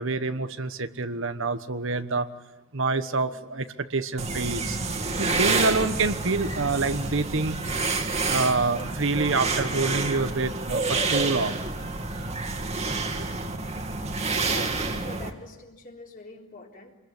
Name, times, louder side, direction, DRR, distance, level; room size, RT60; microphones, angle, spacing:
voice 1, 0.0-2.3 2.7-4.8 5.2-7.6 8.3-11.5, right 3 dB, 55° right, 10 dB, 1.2 m, -27 dB
voice 2, 2.9-3.5 14.3-16.9, left 2 dB, 40° left, 1 dB, 3.8 m, -44 dB
sound 1, 4.2-15.3, right 3 dB, 30° right, 2.2 m, -28 dB
27.5 x 21.5 x 9.9 m, 1.1 s
head